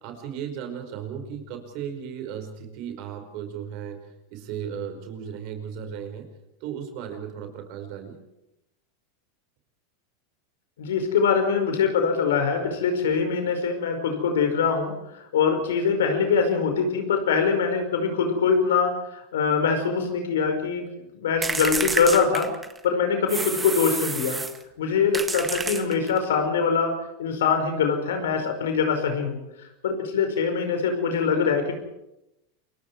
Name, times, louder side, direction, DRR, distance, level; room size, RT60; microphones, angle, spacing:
voice 1, 0.0-4.1 4.3-6.3 6.6-8.2, right 8 dB, 55° right, 7 dB, 5.2 m, -35 dB
voice 2, 10.8-20.9 21.1-22.5 22.8-24.4 24.8-26.9 27.2-31.7, left 5 dB, 80° left, 6 dB, 5.3 m, -23 dB
sound 1, 21.4-22.8 23.3-24.6 25.1-26.2, right 3 dB, 15° right, 1.8 m, -29 dB
28.0 x 23.0 x 4.8 m, 0.89 s
hypercardioid pair, 100°, 0 cm